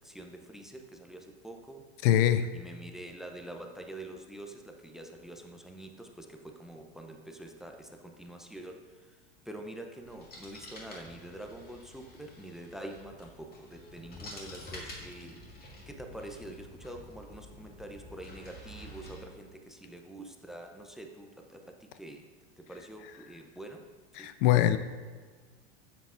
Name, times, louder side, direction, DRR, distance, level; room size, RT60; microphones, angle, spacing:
voice 1, 0.0-1.8 2.5-9.2 9.4-15.6 15.9-22.3 22.6-23.8 24.1-24.3, right 1 dB, ahead, 4 dB, 0.6 m, -46 dB
voice 2, 2.0-2.6 24.2-24.8, left 12 dB, 60° left, 11 dB, 0.5 m, -23 dB
sound 1, 10.0-19.2, left 1 dB, 30° left, 2.0 m, -49 dB
9.1 x 7.4 x 2.5 m, 1.5 s
hypercardioid pair, 105°, 32 cm